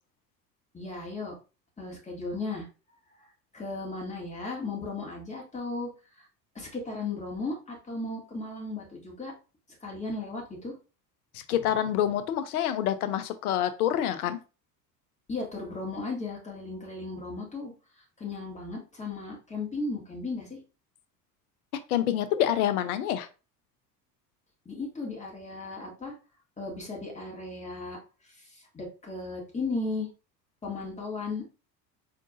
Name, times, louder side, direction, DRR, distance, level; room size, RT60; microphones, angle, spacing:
voice 1, 0.7-1.3 1.8-2.7 3.1-3.3 3.5-5.9 6.6-9.3 9.8-10.7 15.3-17.7 18.2-20.6 24.7-26.1 26.6-28.0 28.7-30.1 30.6-31.4, left 3 dB, 15° left, -2 dB, 1.9 m, -35 dB
voice 2, 11.3-14.4 21.9-23.3, left 11 dB, 60° left, 11 dB, 0.7 m, -27 dB
4.7 x 3.7 x 2.5 m, 0.32 s
figure-of-eight pair, 70°, 49 cm